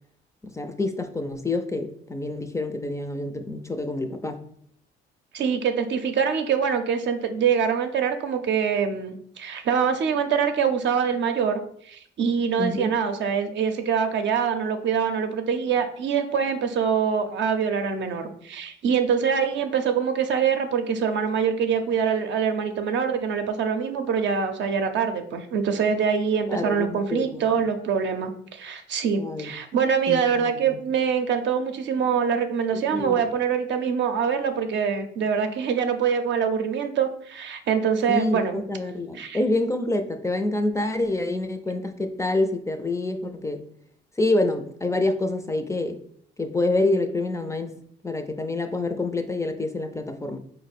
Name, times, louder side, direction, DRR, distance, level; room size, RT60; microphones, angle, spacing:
voice 1, 0.4-4.4 12.6-12.9 26.5-27.7 29.2-29.5 30.1-30.8 32.9-33.2 38.1-43.6 44.2-46.0 46.4-47.7 48.0-50.4, left 2 dB, 15° left, 7 dB, 0.4 m, -27 dB
voice 2, 5.3-38.6 39.1-39.4, right 6 dB, 65° right, 6 dB, 0.6 m, -24 dB
4.4 x 2.1 x 4.1 m, 0.65 s
cardioid pair, 90°, 20 cm